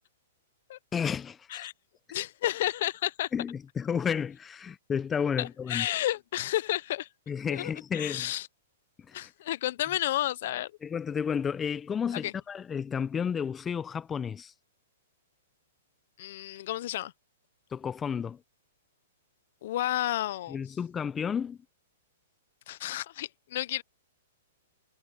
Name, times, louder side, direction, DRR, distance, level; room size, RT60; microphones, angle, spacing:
voice 1, 0.9-1.7 3.3-5.9 7.3-8.3 9.1-9.3 10.8-14.5 17.7-18.4 20.5-21.6, left 7 dB, 20° left, 0.9 m, -32 dB
voice 2, 2.1-3.3 5.4-7.1 7.5-8.5 9.1-10.7 12.2-12.3 16.2-17.1 19.6-20.6 22.7-23.8, left 14 dB, 60° left, 0.8 m, -31 dB
hypercardioid pair, 125°, 0 cm